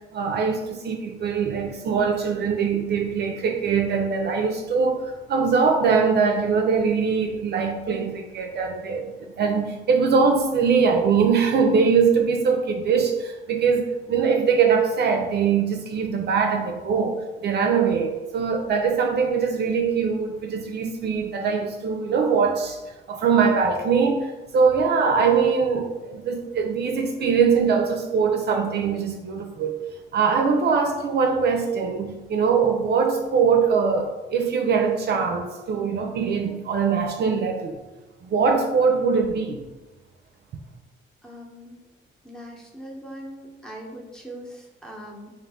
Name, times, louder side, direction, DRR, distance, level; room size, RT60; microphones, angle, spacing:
voice 1, 0.1-22.8 23.1-29.8 30.1-37.8 38.2-39.6, right 5 dB, 55° right, 0.5 m, -22 dB
voice 2, 41.2-41.8 42.2-45.3, equal, 5° left, 0.9 m, -40 dB
3.8 x 2.6 x 3.6 m
cardioid pair, 90°, 20 cm